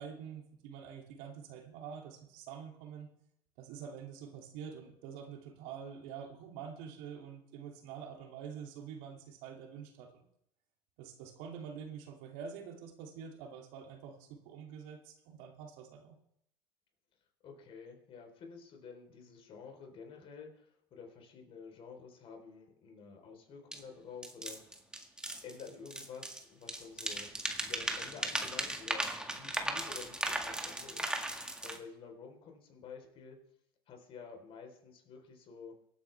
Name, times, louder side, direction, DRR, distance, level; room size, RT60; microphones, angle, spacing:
voice 1, 0.0-3.1 3.6-10.2 11.0-16.2, right 7 dB, 70° right, 2 dB, 2.6 m, -46 dB
voice 2, 17.4-24.7 25.4-27.3 27.7-29.1 29.3-33.5 33.9-35.8, left 5 dB, 50° left, 3 dB, 3.9 m, -50 dB
sound 1, 23.7-23.8 24.2-26.4 26.7-31.8, right 1 dB, 5° right, 2.0 m, -37 dB
24.0 x 9.3 x 3.4 m, 0.74 s
hypercardioid pair, 80°, 12 cm